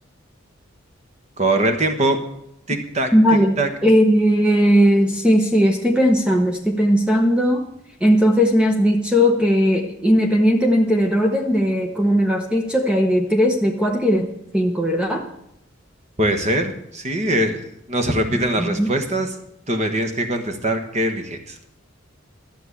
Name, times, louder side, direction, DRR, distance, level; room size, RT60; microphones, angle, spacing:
voice 1, 1.4-2.2 2.7-3.1 3.6-3.7 16.2-19.3 19.7-21.6, right 1 dB, 35° right, 7 dB, 1.4 m, -22 dB
voice 2, 3.1-7.7 8.0-14.3 14.5-15.2 18.6-18.9, equal, 5° right, 2 dB, 0.9 m, -17 dB
13.0 x 6.8 x 8.3 m, 0.78 s
head